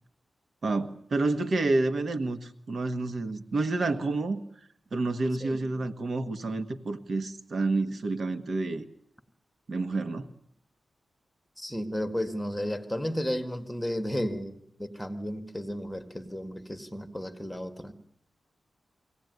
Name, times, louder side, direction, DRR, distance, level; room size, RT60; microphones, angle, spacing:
voice 1, 0.6-4.4 4.9-8.8 9.7-10.3, right 2 dB, 55° right, 1.5 m, -29 dB
voice 2, 11.6-17.9, equal, 5° left, 2.0 m, -33 dB
23.5 x 17.5 x 9.5 m
wide cardioid pair, 105°, 0 cm